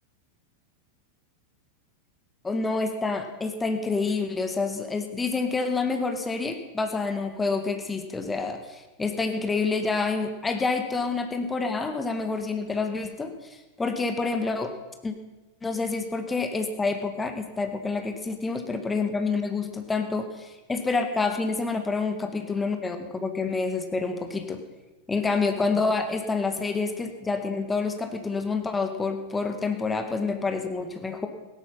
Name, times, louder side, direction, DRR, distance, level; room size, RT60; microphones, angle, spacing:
voice 1, 2.4-14.7 15.0-15.1 15.6-24.6 25.1-31.3, left 4 dB, 15° left, 6 dB, 1.6 m, -28 dB
16.5 x 11.5 x 5.7 m, 1.1 s
figure-of-eight pair, 90°, 0 cm